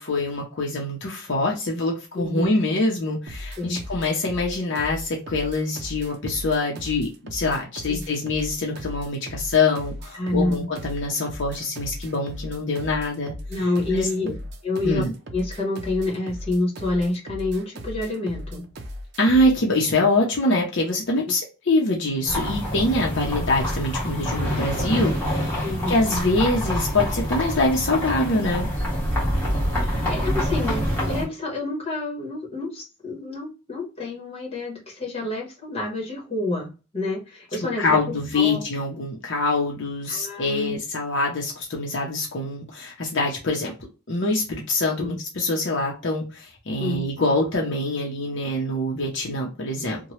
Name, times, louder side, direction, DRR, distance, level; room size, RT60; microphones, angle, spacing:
voice 1, 0.0-13.3 13.9-14.1 14.8-15.1 19.2-28.7 37.8-43.7 44.1-50.0, left 2 dB, 60° left, -1 dB, 0.7 m, -24 dB
voice 2, 2.1-2.5 3.6-3.8 7.9-8.0 10.1-10.7 13.5-14.4 14.6-15.0 15.3-18.6 25.6-26.0 29.8-38.6 40.1-40.8 45.0-45.1 46.8-47.0, left 2 dB, 30° left, -2 dB, 1.2 m, -28 dB
sound 1, 3.3-19.6, equal, 55° right, 0.5 m, -37 dB
sound 2, 22.3-31.2, equal, 10° left, 1.3 m, -26 dB
2.9 x 2.2 x 3.0 m, 0.31 s
head